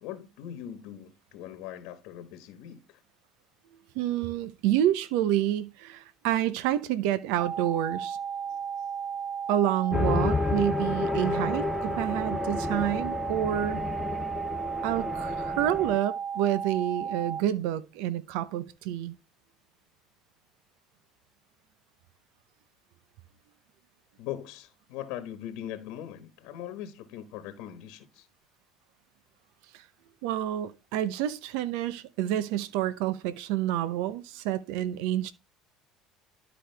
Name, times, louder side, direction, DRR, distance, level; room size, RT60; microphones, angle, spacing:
voice 1, 0.0-3.0 24.2-28.3, left 11 dB, 75° left, 1.2 m, -40 dB
voice 2, 3.9-8.2 9.5-13.8 14.8-19.1 29.7-29.9 30.2-35.3, right 12 dB, 85° right, 0.7 m, -28 dB
sound 1, 7.4-17.4, right 7 dB, 25° right, 0.8 m, -34 dB
sound 2, 9.9-16.0, left 4 dB, 20° left, 0.4 m, -31 dB
12.0 x 4.9 x 3.4 m
supercardioid pair, 115°, 0 cm